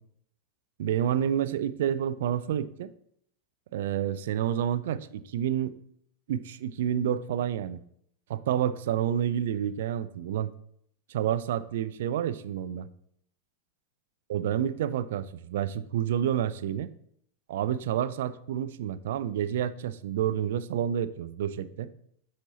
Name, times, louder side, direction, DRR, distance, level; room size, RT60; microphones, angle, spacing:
voice 1, 0.8-2.9 3.7-5.8 6.3-7.8 8.3-10.5 11.1-12.9 14.3-16.9 17.5-21.9, right 10 dB, 55° right, 15 dB, 0.4 m, -29 dB
9.6 x 4.2 x 2.9 m, 0.69 s
figure-of-eight pair, 90°, 0 cm